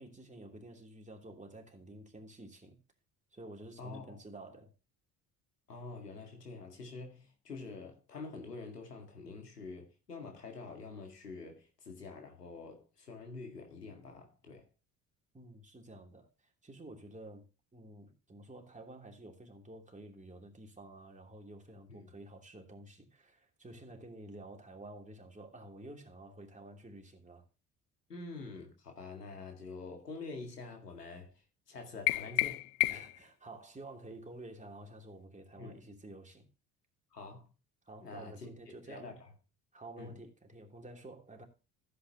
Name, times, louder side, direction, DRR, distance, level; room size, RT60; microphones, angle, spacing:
voice 1, 0.0-2.8 3.3-4.7 15.3-16.3 16.6-17.5 17.7-27.4 32.9-36.5 37.8-39.2 39.7-41.4, right 2 dB, 15° right, 3.0 m, -50 dB
voice 2, 3.8-4.2 5.7-14.7 22.0-22.1 28.1-32.7 35.6-35.8 37.1-37.5 38.0-38.5 38.9-39.3 40.0-40.2, left 3 dB, 85° left, 2.0 m, -46 dB
sound 1, 32.1-33.3, left 23 dB, 50° left, 0.5 m, -31 dB
15.0 x 8.3 x 2.9 m
figure-of-eight pair, 50°, 46 cm